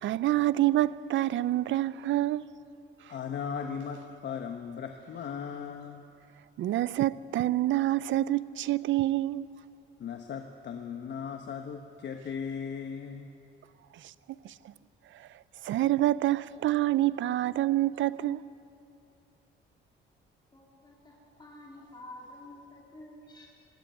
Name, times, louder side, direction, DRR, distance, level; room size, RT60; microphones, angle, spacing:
voice 1, 0.0-2.4 6.6-9.5 14.4-14.5 15.2-15.3 15.6-18.4, right 15 dB, 75° right, 0.6 m, -27 dB
voice 2, 3.1-6.0 10.0-13.3, left 7 dB, 60° left, 1.2 m, -37 dB
voice 3, 20.5-23.5, left 1 dB, 20° left, 3.8 m, -49 dB
18.5 x 16.5 x 9.3 m
cardioid pair, 90°, 20 cm